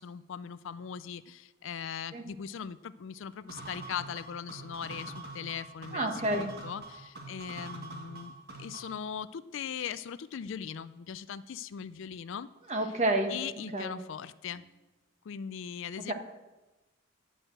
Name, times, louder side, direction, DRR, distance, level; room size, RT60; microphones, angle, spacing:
voice 1, 0.0-8.3 8.6-12.9 13.3-14.6 15.2-16.1, left 7 dB, 60° left, 15 dB, 0.4 m, -40 dB
sound 1, 3.5-9.0, right 2 dB, 50° right, 1.6 m, -44 dB
voice 2, 5.9-6.5 12.7-13.3 13.7-14.0 16.1-16.2, right 1 dB, 35° right, 5 dB, 1.2 m, -29 dB
10.5 x 6.4 x 7.8 m, 1.1 s
head